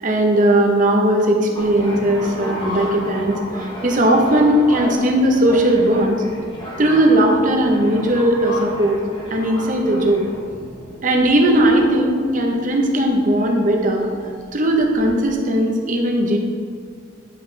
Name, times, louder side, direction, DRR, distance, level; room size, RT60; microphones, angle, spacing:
voice 1, 0.0-3.4 3.8-6.2 6.8-9.0 9.3-10.2 11.0-14.1 14.5-16.4, right 1 dB, 45° right, 1 dB, 0.8 m, -17 dB
sound 1, 1.5-15.3, equal, 25° left, 1.2 m, -33 dB
9.3 x 4.2 x 3.2 m, 2.1 s
head